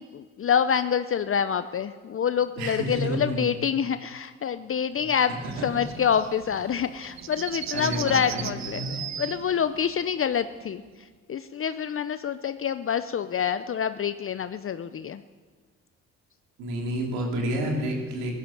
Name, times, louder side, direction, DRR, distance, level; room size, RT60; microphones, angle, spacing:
voice 1, 0.0-15.2, left 8 dB, 40° left, 12 dB, 0.7 m, -27 dB
voice 2, 2.6-3.6 5.1-5.7 7.7-9.0 16.6-18.3, right 1 dB, 80° right, 0 dB, 3.3 m, -30 dB
sound 1, 5.4-11.0, right 9 dB, 50° right, 1.0 m, -38 dB
16.0 x 12.0 x 6.5 m, 1.5 s
hypercardioid pair, 55°, 35 cm